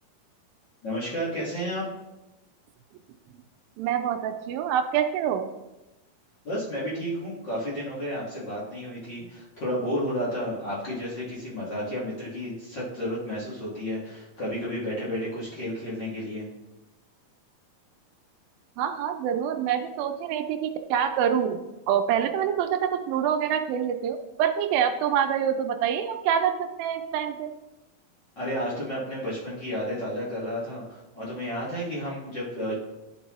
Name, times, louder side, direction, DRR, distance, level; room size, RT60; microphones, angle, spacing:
voice 1, 0.8-1.9 6.4-16.4 28.3-32.7, equal, 45° left, -8 dB, 1.6 m, -32 dB
voice 2, 3.8-5.5 18.8-21.6 21.9-27.5, right 8 dB, 85° right, 7 dB, 2.3 m, -26 dB
10.5 x 5.4 x 3.0 m, 1.0 s
omnidirectional pair, 4.2 m